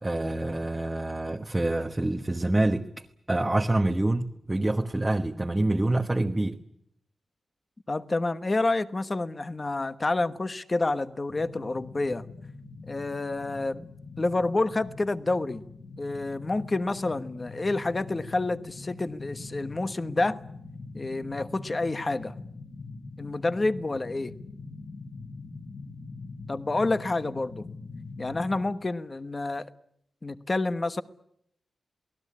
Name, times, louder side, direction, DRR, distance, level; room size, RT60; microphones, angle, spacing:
voice 1, 0.0-2.9 3.3-6.6, right 2 dB, 15° right, 1.2 m, -26 dB
voice 2, 7.9-12.2 12.9-13.8 14.2-15.6 16.0-20.4 20.9-22.3 23.2-24.3 26.5-27.7 28.2-29.7 30.2-31.0, left 2 dB, 25° left, 1.1 m, -28 dB
sound 1, 11.3-28.7, left 3 dB, 45° left, 4.3 m, -43 dB
28.5 x 19.5 x 8.6 m
wide cardioid pair, 120°, 0 cm